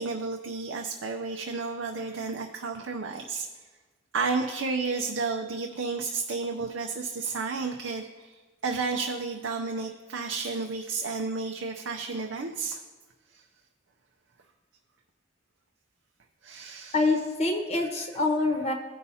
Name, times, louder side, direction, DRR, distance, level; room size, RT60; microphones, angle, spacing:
voice 1, 0.0-3.6 4.1-12.8 13.3-13.4 16.4-17.0, right 4 dB, 80° right, 3 dB, 0.6 m, -32 dB
voice 2, 16.9-18.7, left 3 dB, 30° left, 3 dB, 1.0 m, -25 dB
16.5 x 5.6 x 2.7 m, 1.3 s
head